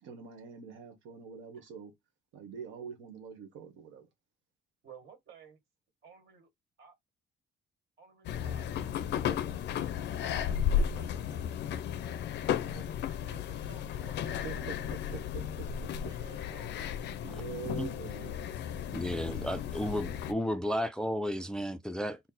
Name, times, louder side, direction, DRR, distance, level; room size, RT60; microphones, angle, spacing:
voice 1, 0.0-1.9 2.3-4.1 14.2-16.1 16.6-18.4, right 6 dB, 85° right, 1.2 m, -45 dB
voice 2, 4.8-5.6 6.0-6.5 6.8-6.9 8.0-11.6 12.4-14.5 14.9-15.0 15.8-16.8 19.1-19.5, right 6 dB, 65° right, 1.8 m, -56 dB
sound 1, 8.2-20.3, left 8 dB, 65° left, 0.5 m, -34 dB
voice 3, 18.9-22.2, equal, 5° left, 0.3 m, -33 dB
4.1 x 2.0 x 4.0 m
cardioid pair, 130°, 19 cm